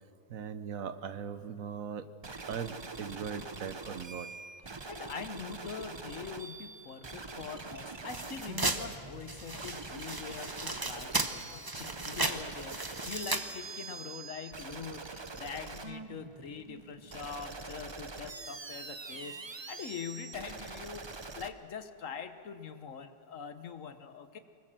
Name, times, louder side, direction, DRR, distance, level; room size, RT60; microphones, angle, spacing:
voice 1, 0.3-2.1 2.4-4.3, right 7 dB, 60° right, 11 dB, 1.2 m, -39 dB
sound 1, 2.2-21.5, right 3 dB, 45° right, 0.3 m, -44 dB
voice 2, 4.9-24.4, left 6 dB, 55° left, 9 dB, 1.4 m, -43 dB
sound 2, 8.1-13.5, right 2 dB, 20° right, 0.8 m, -35 dB
24.5 x 21.0 x 7.5 m, 2.5 s
omnidirectional pair, 1.7 m